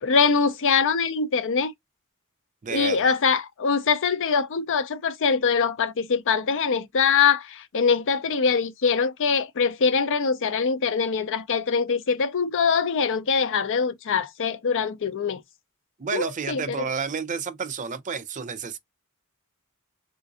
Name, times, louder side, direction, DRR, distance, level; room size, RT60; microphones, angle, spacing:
voice 1, 0.0-1.7 2.7-15.4 16.1-16.9, left 5 dB, 60° left, 0.5 m, -23 dB
voice 2, 2.6-3.2 16.0-18.8, right 5 dB, 35° right, 0.5 m, -31 dB
3.8 x 2.4 x 2.5 m
head